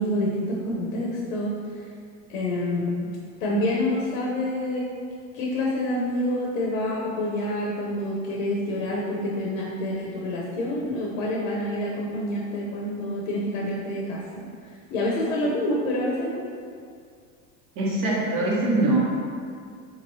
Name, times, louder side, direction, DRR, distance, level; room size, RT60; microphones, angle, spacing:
voice 1, 0.0-1.8 2.3-3.1 3.4-4.9 5.3-14.4 14.9-16.4, left 1 dB, 80° left, -3 dB, 0.8 m, -27 dB
voice 2, 17.8-19.2, right 2 dB, 55° right, -3 dB, 1.1 m, -23 dB
4.0 x 3.1 x 2.7 m, 2.2 s
hypercardioid pair, 100°, 40 cm